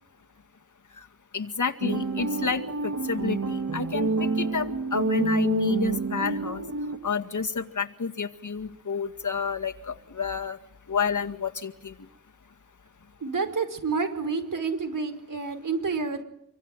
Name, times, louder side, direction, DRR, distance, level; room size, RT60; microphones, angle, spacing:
voice 1, 1.3-6.6 7.0-10.6 10.9-11.9, left 5 dB, 70° left, 7 dB, 2.0 m, -30 dB
sound 1, 1.8-7.0, right 3 dB, 60° right, 2.5 m, -28 dB
voice 2, 13.2-16.2, right 4 dB, 80° right, 10 dB, 4.9 m, -29 dB
26.5 x 24.5 x 9.1 m, 0.72 s
wide cardioid pair, 80°, 32 cm